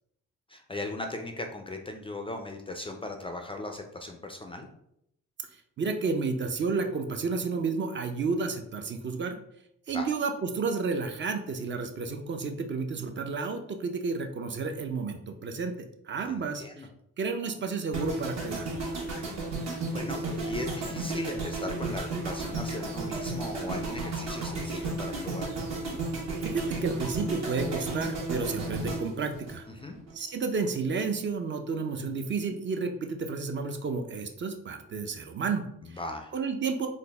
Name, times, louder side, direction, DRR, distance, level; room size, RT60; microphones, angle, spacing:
voice 1, 0.5-4.7 9.9-10.1 16.3-16.9 19.5-25.5 29.7-30.0 35.8-36.3, left 2 dB, 20° left, 4 dB, 0.3 m, -38 dB
voice 2, 5.8-9.4 9.9-15.7 16.0-16.9 17.2-18.7 26.4-29.6 30.1-36.0 36.3-36.9, right 4 dB, 40° right, 6 dB, 0.5 m, -31 dB
sound 1, 17.9-30.1 30.4-30.7, right 2 dB, 60° right, 1.2 m, -33 dB
3.9 x 2.0 x 3.3 m, 0.77 s
cardioid pair, 90°, 30 cm